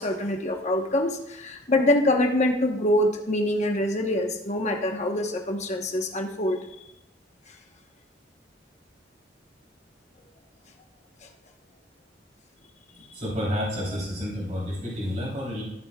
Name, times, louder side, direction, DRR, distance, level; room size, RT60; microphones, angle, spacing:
voice 1, 0.0-6.7 13.0-13.1, left 1 dB, 40° left, 3 dB, 1.2 m, -25 dB
voice 2, 13.1-15.6, equal, 45° right, -5 dB, 3.8 m, -30 dB
14.5 x 7.1 x 2.4 m, 0.87 s
head